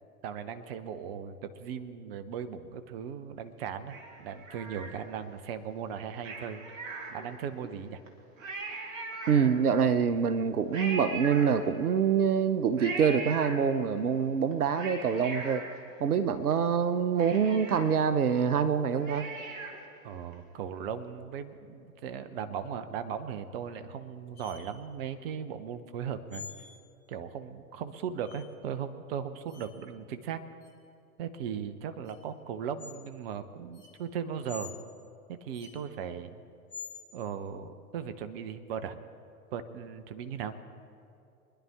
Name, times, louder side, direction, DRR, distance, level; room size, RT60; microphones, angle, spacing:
voice 1, 0.2-6.8 7.1-8.0 20.0-26.5 27.1-30.4 31.2-34.7 35.3-36.4 37.1-39.0 39.5-40.5, right 7 dB, 40° right, 10 dB, 1.0 m, -38 dB
Cat, 3.9-5.4 6.2-7.6 8.1-8.2 8.4-9.9 10.7-12.1 12.8-14.0 14.5-16.5 16.8-16.9 17.2-20.0 20.3-20.4, right 3 dB, 55° right, 2.5 m, -40 dB
voice 2, 9.3-15.6 16.0-19.3, right 7 dB, 75° right, 12 dB, 0.8 m, -25 dB
sound 1, 24.3-24.6 26.3-26.8 28.2-28.4 29.5-29.7 30.6-30.7 32.0-32.1 32.8-33.0 33.7-33.9 34.5-34.7 35.5-35.7 36.7-37.0, left 5 dB, 15° left, 3.8 m, -45 dB
24.5 x 11.0 x 3.6 m, 2.6 s
figure-of-eight pair, 110°, 45 cm